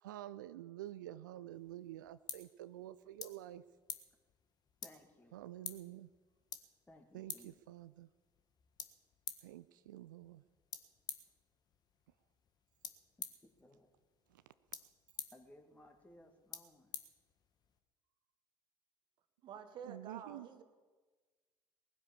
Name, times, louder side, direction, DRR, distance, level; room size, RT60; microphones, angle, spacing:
voice 1, 0.0-3.6 5.3-6.1 7.1-8.1 9.4-10.4 14.3-14.4 19.8-20.5, right 13 dB, 70° right, 15 dB, 0.4 m, -49 dB
sound 1, 1.5-17.8, left 7 dB, 40° left, 1.5 m, -52 dB
voice 2, 4.8-5.4 6.9-7.6 13.2-13.9 15.3-16.9, left 1 dB, 15° left, 4 dB, 2.4 m, -61 dB
voice 3, 19.4-20.6, right 7 dB, 50° right, 9 dB, 1.6 m, -49 dB
20.0 x 9.8 x 7.3 m, 1.4 s
figure-of-eight pair, 60°, 11 cm